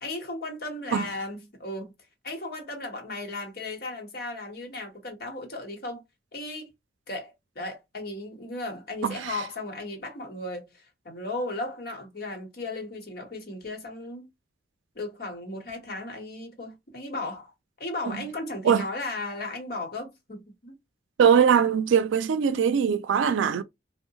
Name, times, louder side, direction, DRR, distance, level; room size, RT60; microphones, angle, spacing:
voice 1, 0.0-1.9 2.2-6.0 6.3-6.7 7.1-14.3 14.9-17.5 17.8-20.7, left 2 dB, 55° left, 1.0 m, -36 dB
voice 2, 9.0-9.4 18.6-18.9 21.2-23.6, right 7 dB, 90° right, 0.3 m, -21 dB
2.7 x 2.0 x 2.7 m
head